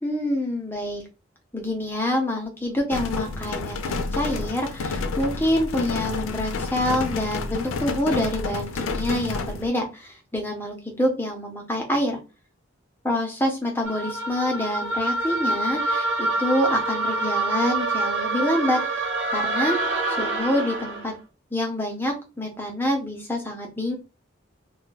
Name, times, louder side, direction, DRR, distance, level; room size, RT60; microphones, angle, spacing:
voice 1, 0.0-1.0 1.5-12.2 13.0-18.8 19.3-19.8 20.2-21.1 21.5-23.9, left 1 dB, 10° left, 1 dB, 0.6 m, -26 dB
sound 1, 2.9-9.7, left 3 dB, 85° left, 0.4 m, -29 dB
sound 2, 13.8-21.1, right 2 dB, 65° right, 0.8 m, -26 dB
2.2 x 2.2 x 3.9 m, 0.31 s
head